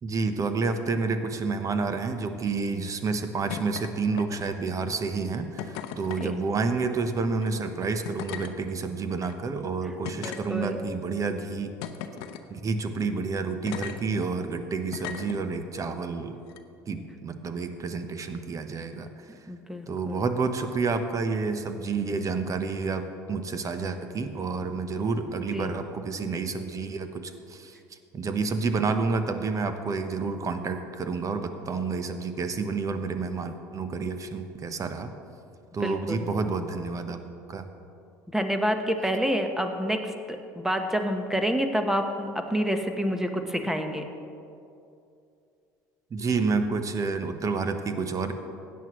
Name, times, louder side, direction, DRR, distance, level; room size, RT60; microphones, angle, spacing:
voice 1, 0.0-11.7 12.5-16.4 16.9-19.1 19.9-27.8 28.1-35.1 35.7-37.2 37.5-37.7 46.1-48.3, right 4 dB, 35° right, 8 dB, 1.0 m, -29 dB
sound 1, 3.5-3.9 4.2-4.6 5.6-6.3 7.3-7.5 8.0-8.5 9.2-9.3 10.0-10.9 11.8-12.4 13.7-14.0 14.9-15.4 16.5-16.6, left 10 dB, 70° left, 0.7 m, -37 dB
voice 2, 10.2-10.8 19.5-20.2 25.5-25.8 35.8-36.3 38.3-44.0, equal, 5° right, 6 dB, 1.1 m, -28 dB
16.5 x 9.4 x 3.1 m, 2.6 s
hypercardioid pair, 75°, 10 cm